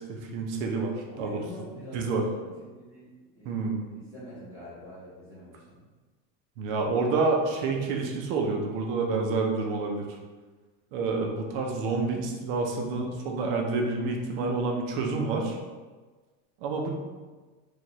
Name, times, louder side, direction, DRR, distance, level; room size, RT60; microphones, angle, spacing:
voice 1, 0.1-0.9 1.2-1.4 1.9-2.2 3.4-3.9 6.6-10.1 10.9-15.6 16.6-16.9, right 3 dB, 45° right, 2 dB, 0.6 m, -28 dB
voice 2, 1.1-3.0 3.3-3.7 4.1-5.6, left 1 dB, 10° right, -11 dB, 0.8 m, -44 dB
4.6 x 2.4 x 3.0 m, 1.3 s
supercardioid pair, 170°, 40 cm